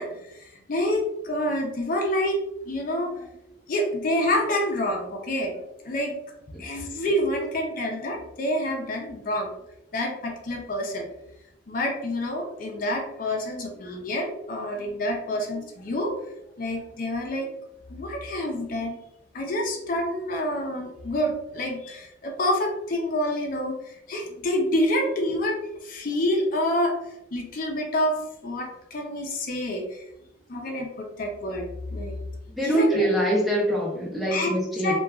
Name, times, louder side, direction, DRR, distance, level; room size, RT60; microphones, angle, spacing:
voice 1, 0.0-3.3 3.7-6.2 6.6-9.5 9.9-11.1 11.7-16.2 16.6-17.5 17.9-19.0 19.3-28.2 28.4-30.0 30.5-32.2 32.6-33.0 34.3-34.5 34.8-35.0, left 1 dB, 50° left, 1 dB, 0.5 m, -28 dB
voice 2, 32.5-35.0, equal, ahead, -4 dB, 0.5 m, -24 dB
2.8 x 2.2 x 2.3 m, 0.84 s
head